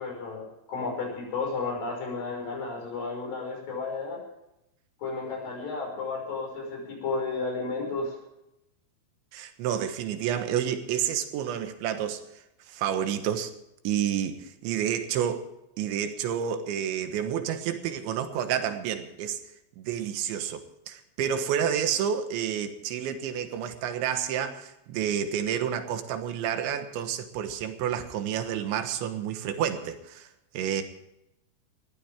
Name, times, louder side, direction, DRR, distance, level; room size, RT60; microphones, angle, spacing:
voice 1, 0.0-4.2 5.0-8.2, left 4 dB, 50° left, 7.6 m, -33 dB
voice 2, 9.3-12.2 12.7-13.5 13.9-15.5 15.8-19.4 19.8-30.3 30.6-30.8, right 9 dB, 80° right, 3.6 m, -29 dB
20.5 x 15.0 x 3.6 m
omnidirectional pair, 5.3 m